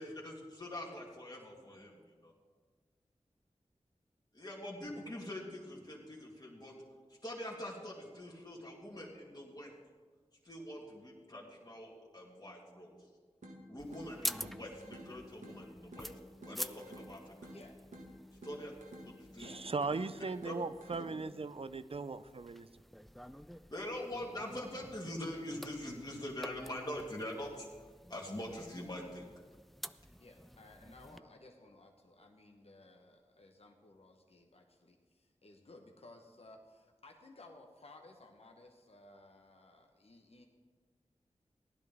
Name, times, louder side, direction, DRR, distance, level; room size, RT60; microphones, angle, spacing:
voice 1, 0.0-1.9 2.2-2.3 4.3-6.7 7.2-9.7 10.4-12.9 13.7-16.1 16.4-17.5 18.4-18.7 19.0-19.7 20.4-20.5 23.7-27.7 28.1-29.3, left 1 dB, 35° left, -4 dB, 2.4 m, -44 dB
sound 1, 13.4-21.4, equal, 90° right, 1.4 m, -53 dB
sound 2, 13.8-31.2, equal, ahead, 0.4 m, -48 dB
voice 2, 19.4-22.7, right 4 dB, 50° right, 13 dB, 0.5 m, -38 dB
voice 3, 30.2-40.5, left 2 dB, 55° left, 2 dB, 1.1 m, -58 dB
15.5 x 11.0 x 3.6 m, 1.5 s
cardioid pair, 45°, 12 cm